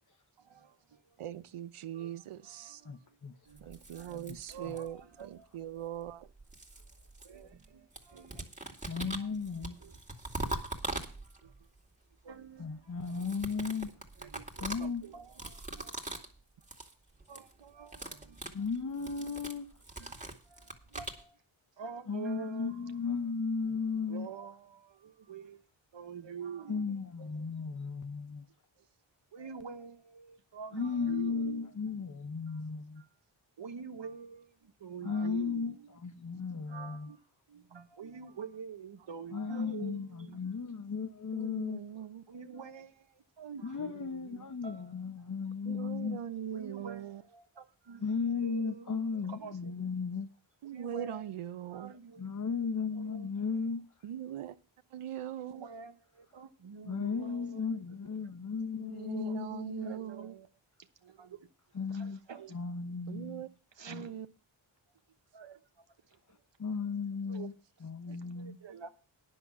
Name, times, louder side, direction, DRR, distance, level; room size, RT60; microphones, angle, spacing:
voice 1, 0.4-1.2 1.9-3.0 3.5-5.6 7.2-8.5 9.2-9.3 9.6-10.0 11.3-11.7 12.2-13.3 14.2-16.2 17.3-18.4 19.0-19.1 20.0-21.4 21.8-23.0 24.1-25.7 25.9-26.9 27.2-27.5 28.8-28.9 29.3-31.7 33.0-33.1 33.6-36.0 36.7-37.2 37.5-40.4 42.3-45.0 46.5-48.0 48.3-49.7 50.7-51.3 51.7-52.3 52.9-53.4 55.4-57.8 59.1-59.4 59.8-60.5 61.0-61.5 61.9-62.5 63.8-64.2 65.3-66.4 67.3-67.5 68.1-68.9, right 6 dB, 60° right, 1.1 m, -47 dB
voice 2, 1.2-2.8 3.6-6.3 41.3-42.2 45.6-47.2 50.6-51.9 54.0-54.5 54.9-55.7 58.8-60.4 63.1-63.5 63.8-64.3, right 10 dB, 90° right, 0.7 m, -41 dB
voice 3, 2.8-3.5 4.3-4.4 8.9-9.8 12.6-13.9 14.6-15.0 18.5-19.7 22.1-24.3 26.7-28.5 30.7-33.0 35.0-37.1 39.3-41.8 43.6-46.2 48.0-50.3 52.2-53.9 56.9-60.0 61.7-62.2 62.5-63.5 63.9-64.1 66.6-67.5 67.8-68.6, left 5 dB, 40° left, 0.9 m, -35 dB
sound 1, 3.6-5.1 6.1-7.7 7.9-11.6 13.0-16.3 16.6-16.9 17.2-17.5 17.8-21.2, right 2 dB, 15° right, 2.3 m, -42 dB
10.0 x 6.6 x 7.1 m
cardioid pair, 60°, 49 cm